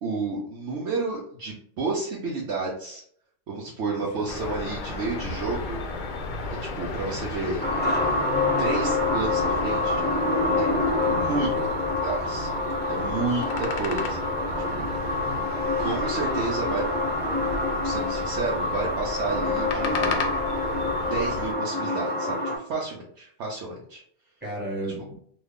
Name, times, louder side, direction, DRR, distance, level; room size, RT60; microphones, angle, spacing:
voice 1, 0.0-3.0 3.5-5.8 6.6-7.7 8.6-10.2 10.6-10.7 11.0-11.6 12.0-12.5 12.9-14.3 14.7-14.9 15.8-16.9 17.8-20.2 21.1-24.0, right 3 dB, 70° right, -3 dB, 1.0 m, -31 dB
voice 2, 4.0-4.6 7.0-7.2 11.0-11.7 14.6-15.5 24.4-25.1, right 1 dB, 10° right, -5 dB, 1.2 m, -36 dB
sound 1, 4.3-21.5, left 3 dB, 65° left, 0.5 m, -34 dB
sound 2, 7.6-22.6, left 2 dB, 10° left, 0.5 m, -26 dB
3.1 x 2.3 x 3.5 m, 0.64 s
omnidirectional pair, 1.3 m